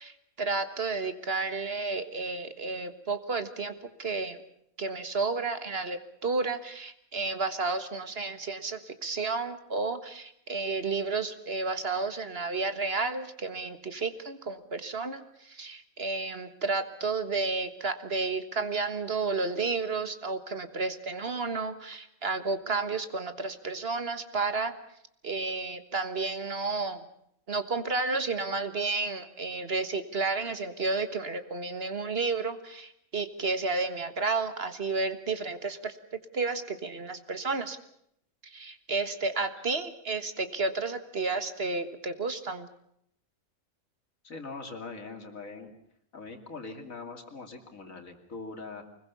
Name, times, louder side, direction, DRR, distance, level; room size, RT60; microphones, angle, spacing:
voice 1, 0.0-4.4 4.8-24.7 25.2-27.0 27.5-36.0 36.3-37.8 38.4-42.7, right 3 dB, 45° right, 9 dB, 1.7 m, -31 dB
voice 2, 44.2-45.7 46.1-48.8, left 3 dB, 70° left, 5 dB, 3.1 m, -42 dB
25.0 x 21.0 x 6.9 m, 0.72 s
omnidirectional pair, 1.4 m